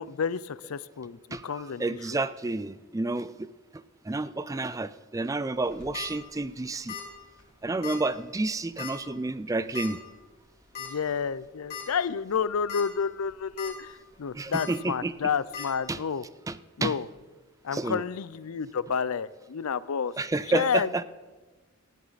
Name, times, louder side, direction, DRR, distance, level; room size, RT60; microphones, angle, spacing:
voice 1, 0.0-1.2 1.4-2.0 10.8-16.2 16.8-17.1 17.6-20.1 20.5-21.0, left 6 dB, 75° left, 18 dB, 0.5 m, -30 dB
voice 2, 1.3-7.0 7.6-10.0 14.3-15.1 15.9-16.0 16.5-16.9 17.7-18.0 20.2-21.0, right 2 dB, 15° right, 15 dB, 0.3 m, -30 dB
sound 1, 5.6-6.1 6.9-7.1 7.4-7.5 7.8-8.0 8.8-9.1 9.7-9.9 10.7-10.9 11.3-11.4 11.7-11.8 12.5-12.8 13.2-13.7 14.5-14.7 15.5-15.7, left 8 dB, 40° left, 3.7 m, -37 dB
18.5 x 13.0 x 4.1 m, 1.3 s
head